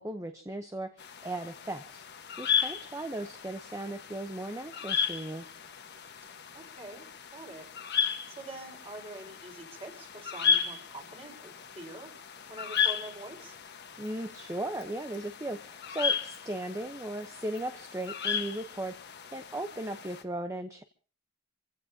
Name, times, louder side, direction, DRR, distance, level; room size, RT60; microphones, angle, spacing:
voice 1, 0.0-2.0 2.4-5.5 14.0-19.0 19.3-20.8, right 1 dB, 15° right, 7 dB, 0.9 m, -37 dB
sound 1, 1.0-20.2, left 7 dB, 55° left, 1.4 m, -35 dB
voice 2, 6.5-7.0 7.3-7.7 8.3-12.1 12.5-13.5, right 2 dB, 30° right, 1 dB, 4.8 m, -45 dB
27.0 x 16.0 x 2.8 m, 0.38 s
head